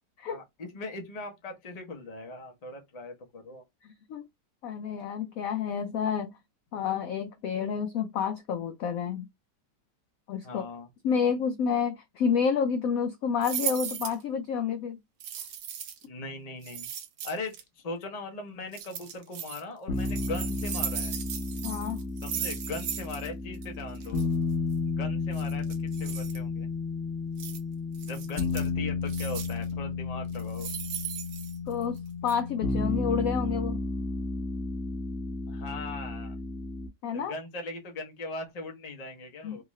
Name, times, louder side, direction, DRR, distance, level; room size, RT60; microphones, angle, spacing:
voice 1, 0.3-3.6 6.7-6.8 10.4-10.9 16.1-16.9 17.2-21.1 22.2-24.3 24.9-26.7 28.0-30.7 35.5-36.4 37.1-39.6, left 2 dB, 35° left, 0.6 m, -39 dB
voice 2, 3.8-4.3 4.6-6.3 6.7-9.3 10.3-10.6 11.0-15.0 21.6-22.0 31.7-33.8 37.0-37.3 39.4-39.6, left 7 dB, 75° left, 0.8 m, -29 dB
sound 1, 13.4-14.2 15.2-16.1 16.6-17.6 18.7-19.6 20.0-23.3 23.5-23.7 24.0-24.2 25.3-26.4 27.4-27.6 28.0-28.7 29.1-29.7 30.3-32.0 32.3-32.4, right 9 dB, 90° right, 1.4 m, -37 dB
sound 2, 19.9-36.9, left 3 dB, 50° left, 1.0 m, -32 dB
3.7 x 2.4 x 3.0 m
omnidirectional pair, 1.9 m